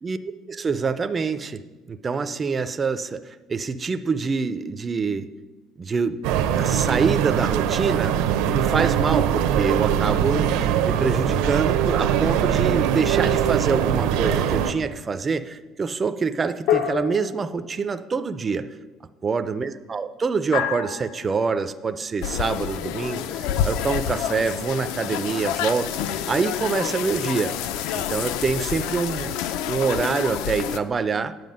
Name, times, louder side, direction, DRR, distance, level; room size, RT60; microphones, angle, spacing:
voice 1, 0.5-1.6 1.9-5.3 5.8-6.2 6.6-8.1 8.4-18.7 19.2-25.9 26.3-27.5 27.9-29.4 29.7-31.3, right 5 dB, 20° right, 10 dB, 0.3 m, -25 dB
sound 1, 6.2-14.7, right 9 dB, 80° right, 0.7 m, -22 dB
sound 2, 14.3-14.9 16.7-18.0 20.5-21.4, left 9 dB, 90° left, 1.1 m, -28 dB
sound 3, 22.2-30.8, left 9 dB, 70° left, 0.4 m, -28 dB
9.3 x 7.7 x 5.3 m, 1.2 s
cardioid pair, 175°, 0 cm